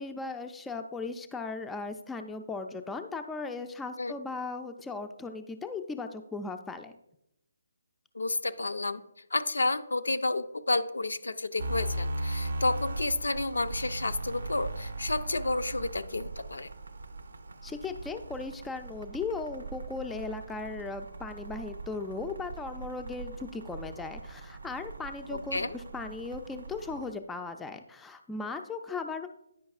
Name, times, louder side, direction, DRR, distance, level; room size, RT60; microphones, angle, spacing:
voice 1, 0.0-7.0 17.6-29.3, left 4 dB, 5° left, 6 dB, 0.3 m, -37 dB
voice 2, 8.1-9.0 9.3-16.7 25.3-25.8, left 2 dB, 75° left, 10 dB, 0.5 m, -30 dB
sound 1, 11.6-27.1, right 2 dB, 70° right, 0.4 m, -39 dB
9.5 x 5.2 x 2.4 m, 0.81 s
figure-of-eight pair, 145°, 0 cm